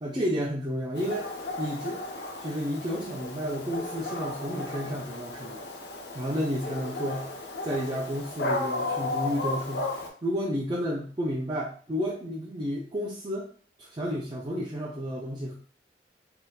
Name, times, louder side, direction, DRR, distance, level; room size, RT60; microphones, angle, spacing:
voice 1, 0.0-1.3 1.6-2.0 2.4-5.6 6.1-7.3 7.6-9.9 10.2-13.5 13.8-15.5, equal, 25° right, -4 dB, 0.5 m, -31 dB
Dog, 0.9-10.1, left 2 dB, 65° left, 0.6 m, -34 dB
3.5 x 2.7 x 2.4 m, 0.43 s
head